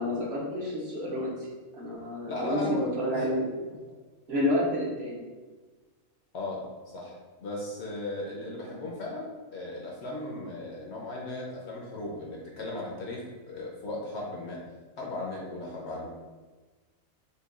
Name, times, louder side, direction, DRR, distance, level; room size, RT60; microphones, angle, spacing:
voice 1, 0.0-1.5 1.7-3.5 4.3-5.3, left 1 dB, 55° right, -4 dB, 0.9 m, -29 dB
voice 2, 2.3-2.9 3.1-3.3 6.3-6.6 6.9-14.6 15.0-16.1, left 2 dB, 60° left, -3 dB, 0.8 m, -36 dB
5.3 x 2.2 x 2.4 m, 1.3 s
omnidirectional pair, 1.5 m